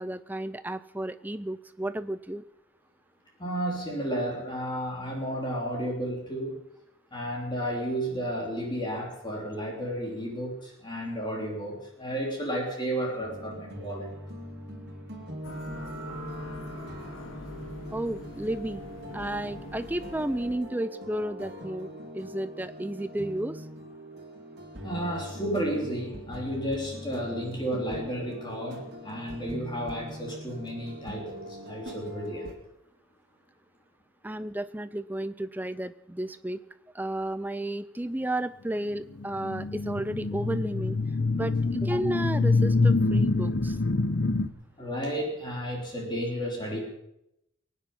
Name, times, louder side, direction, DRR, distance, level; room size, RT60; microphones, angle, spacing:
voice 1, 0.0-2.4 17.9-18.8 19.1-23.7 34.2-36.6 36.9-41.0 41.3-43.8, right 1 dB, 10° right, 13 dB, 0.5 m, -32 dB
voice 2, 3.4-6.6 7.1-14.1 24.8-32.5 44.8-46.8, equal, 20° left, -1 dB, 3.2 m, -32 dB
sound 1, 13.2-32.5, equal, 50° right, 2.5 m, -42 dB
sound 2, 15.4-20.6, left 1 dB, 80° left, 2.8 m, -42 dB
sound 3, 39.2-44.5, left 3 dB, 60° left, 0.8 m, -25 dB
22.0 x 9.5 x 5.5 m, 0.82 s
head